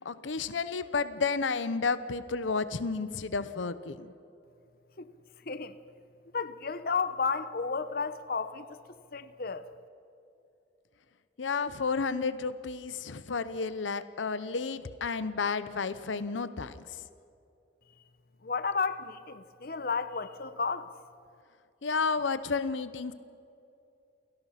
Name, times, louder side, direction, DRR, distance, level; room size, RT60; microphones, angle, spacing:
voice 1, 0.0-4.1 11.4-17.0 21.8-23.1, left 4 dB, 85° left, 0.8 m, -31 dB
voice 2, 5.5-5.8 6.3-8.8 9.1-9.6 18.4-20.9, left 5 dB, 50° left, 0.9 m, -32 dB
29.0 x 17.5 x 5.8 m
head